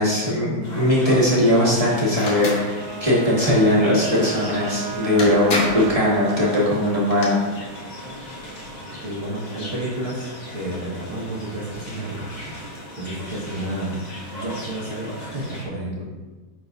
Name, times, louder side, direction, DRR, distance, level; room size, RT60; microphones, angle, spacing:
voice 1, 0.0-7.5, left 1 dB, 20° right, -6 dB, 1.6 m, -19 dB
sound 1, 0.6-15.7, left 1 dB, 30° left, 1.1 m, -38 dB
sound 2, 2.1-2.6 4.7-4.8 5.2-5.9 6.9-7.3, left 2 dB, 65° left, 1.5 m, -26 dB
Bowed string instrument, 2.5-6.8, right 7 dB, 55° right, 1.3 m, -34 dB
voice 2, 9.0-12.5 12.9-14.0 14.3-16.1, right 1 dB, 40° right, -8 dB, 1.5 m, -31 dB
9.6 x 3.9 x 2.6 m, 1.3 s
omnidirectional pair, 1.7 m